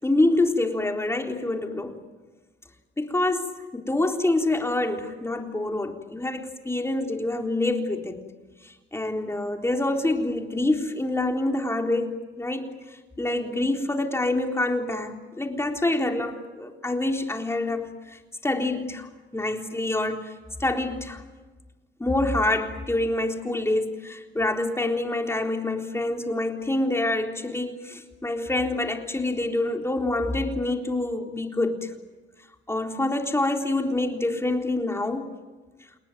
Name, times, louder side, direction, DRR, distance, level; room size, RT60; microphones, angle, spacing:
voice 1, 0.0-2.0 3.0-8.2 8.6-20.3 20.6-21.2 22.0-31.9 32.7-35.3, left 2 dB, 15° left, 3 dB, 3.9 m, -26 dB
29.5 x 20.0 x 9.4 m, 1.3 s
cardioid pair, 90°, 20 cm